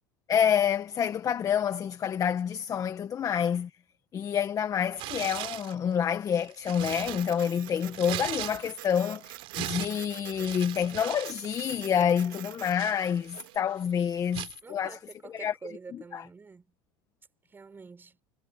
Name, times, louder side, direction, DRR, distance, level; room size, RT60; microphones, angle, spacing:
voice 1, 0.3-3.7 4.1-15.0 15.2-15.6 15.9-16.2, left 8 dB, 30° left, 1.6 m, -28 dB
Tearing, 4.9-5.7 6.3-8.9 9.2-11.4 11.6-11.8 12.4-13.5 14.3-14.6, right 18 dB, 55° right, 4.1 m, -38 dB
Printer, 6.8-13.6, right 18 dB, 80° right, 1.9 m, -46 dB
voice 2, 14.6-16.7 17.5-18.2, right 4 dB, 20° right, 5.5 m, -47 dB
supercardioid pair, 115°, 11 cm